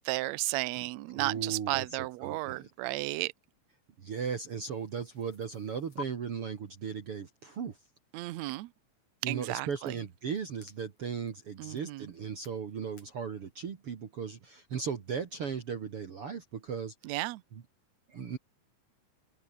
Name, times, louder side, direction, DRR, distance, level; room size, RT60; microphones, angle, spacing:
voice 1, 0.0-3.3 8.1-8.7 9.2-9.9 11.6-12.1 17.0-17.4, right 20 dB, 80° right, 1.6 m, -33 dB
voice 2, 1.1-2.7 4.0-7.8 9.2-17.1 17.5-17.6 18.1-18.4, right 6 dB, 45° right, 2.5 m, -37 dB
sound 1, 4.6-6.0 9.4-13.1, left 4 dB, 50° left, 6.3 m, -52 dB
omnidirectional pair, 4.0 m